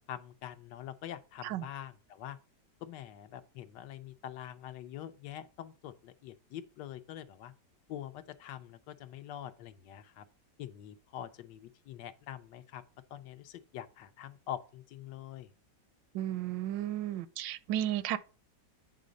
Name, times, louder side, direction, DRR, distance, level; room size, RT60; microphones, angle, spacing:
voice 1, 0.0-2.4 2.8-7.5 7.9-10.3 10.6-12.8 13.1-15.5, left 11 dB, 80° left, 1.3 m, -45 dB
voice 2, 16.1-18.2, right 12 dB, 85° right, 1.3 m, -33 dB
8.4 x 3.9 x 5.1 m
omnidirectional pair, 1.9 m